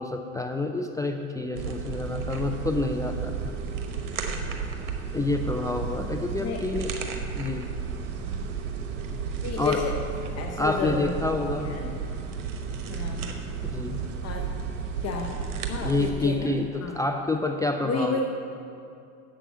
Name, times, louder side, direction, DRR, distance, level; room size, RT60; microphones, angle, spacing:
voice 1, 0.0-3.6 5.1-6.9 7.4-7.7 9.6-9.8 10.6-11.7 13.6-14.0 15.8-18.2, left 2 dB, 10° left, 4 dB, 0.3 m, -28 dB
sound 1, 1.5-16.1, right 6 dB, 65° right, 1.2 m, -33 dB
voice 2, 9.4-9.9 10.4-11.1 11.5-11.9 12.9-13.3 14.2-14.5 15.0-15.3 15.7-17.0 17.8-18.2, left 5 dB, 40° left, 2 dB, 0.9 m, -31 dB
7.5 x 6.3 x 7.9 m, 2.6 s
hypercardioid pair, 90°, 39 cm